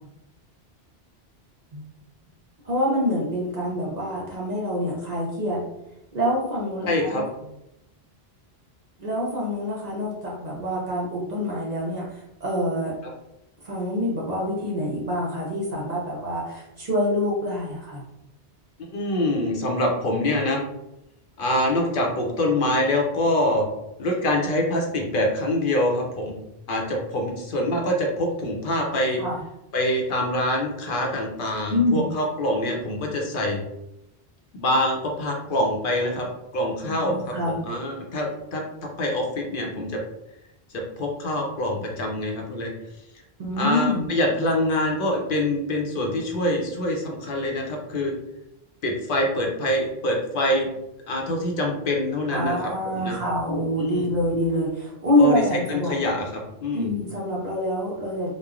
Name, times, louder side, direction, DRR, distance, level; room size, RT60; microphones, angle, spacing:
voice 1, 2.6-5.6 6.1-7.3 9.0-13.0 13.6-18.0 29.2-29.4 31.7-32.1 36.8-37.6 43.4-44.1 52.3-55.9 56.7-58.3, left 1 dB, 45° right, -4 dB, 0.7 m, -26 dB
voice 2, 6.9-7.2 18.8-20.6 21.4-23.7 24.0-26.4 26.7-29.2 29.7-33.6 34.5-38.6 39.0-40.0 40.7-42.7 43.6-48.1 48.8-50.7 51.1-53.2 53.8-54.1 55.2-56.2 56.6-56.9, left 1 dB, 65° left, 0 dB, 0.7 m, -25 dB
3.0 x 2.1 x 2.4 m, 0.88 s
omnidirectional pair, 1.0 m